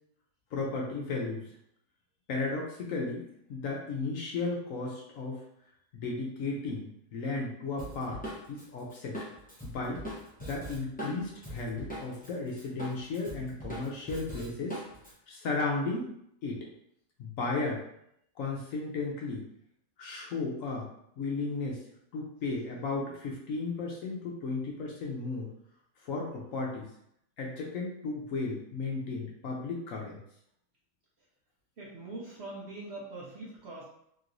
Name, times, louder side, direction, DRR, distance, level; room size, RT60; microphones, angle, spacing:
voice 1, 0.5-1.5 2.3-5.4 5.9-8.2 8.5-9.2 9.6-10.0 10.4-14.8 15.3-16.1 16.4-16.7 17.2-17.8 18.4-19.4 20.0-20.9 21.2-21.8 22.1-25.5 26.0-26.9 27.4-30.2, left 3 dB, 65° left, -2 dB, 0.9 m, -34 dB
Drum kit, 7.8-12.3 12.6-15.1, right 1 dB, 10° left, 0.4 m, -41 dB
voice 2, 31.8-33.9, right 2 dB, 55° right, -5 dB, 0.8 m, -42 dB
3.0 x 2.9 x 2.5 m, 0.74 s
omnidirectional pair, 1.7 m